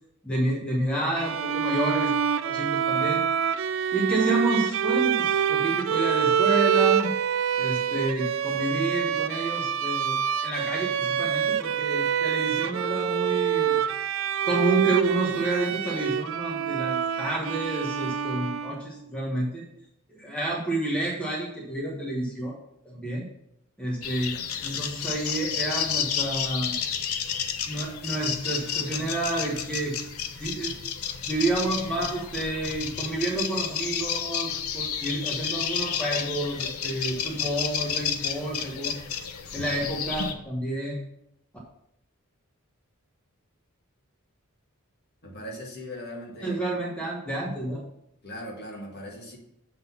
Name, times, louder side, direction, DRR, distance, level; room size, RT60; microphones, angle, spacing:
voice 1, 0.2-2.2 2.4-3.2 3.9-7.1 7.6-13.8 14.5-19.6 20.1-22.6 22.8-23.3 23.8-26.7 27.7-29.9 30.4-30.7 31.3-39.1 39.5-41.0 46.4-47.8, right 2 dB, 5° left, -4 dB, 1.2 m, -29 dB
Bowed string instrument, 1.1-19.0, right 8 dB, 60° right, 0.3 m, -26 dB
sound 1, 24.0-40.3, left 8 dB, 85° left, 0.7 m, -31 dB
voice 2, 45.2-46.6 48.2-49.4, left 1 dB, 45° left, -2 dB, 1.7 m, -39 dB
7.5 x 4.0 x 5.6 m, 0.77 s
head